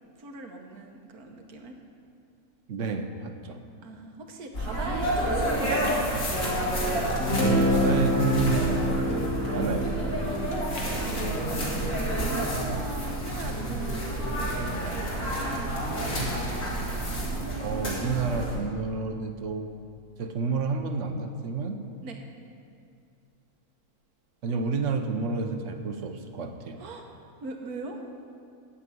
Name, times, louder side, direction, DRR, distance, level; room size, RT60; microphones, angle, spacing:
voice 1, 0.2-1.7 3.8-6.4 9.6-10.3 10.7-10.9 11.4-16.5 22.0-22.2 26.8-27.1 27.4-28.0, right 2 dB, 75° right, 3 dB, 1.6 m, -40 dB
voice 2, 2.7-3.6 7.4-9.9 17.6-19.7 20.2-21.8 24.4-26.8, right 4 dB, 55° right, 7 dB, 1.1 m, -30 dB
sound 1, 4.5-18.6, right 1 dB, 55° left, 2.6 m, -29 dB
sound 2, 5.4-5.5 5.9-6.0 6.4-7.3 8.0-8.1 8.8-8.9 9.1-9.2 10.5-10.9 11.1-11.9 12.5-12.9 13.5-13.6 14.7-15.1, left 2 dB, 75° left, 2.0 m, -45 dB
Guitar, 7.2-13.0, left 1 dB, 15° left, 1.6 m, -28 dB
9.2 x 8.6 x 7.7 m, 2.4 s
omnidirectional pair, 1.6 m